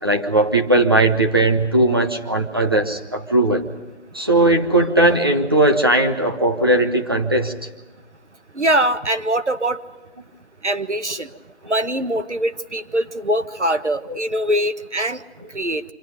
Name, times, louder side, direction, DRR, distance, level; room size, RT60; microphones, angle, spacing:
voice 1, 0.0-3.6 4.1-7.5 14.1-14.2, right 2 dB, 20° right, 4 dB, 1.1 m, -18 dB
voice 2, 8.5-9.8 10.6-11.3 11.7-15.2 15.5-15.8, right 1 dB, 85° right, 10 dB, 1.6 m, -22 dB
26.0 x 25.5 x 5.2 m, 1.1 s
figure-of-eight pair, 165°, 34 cm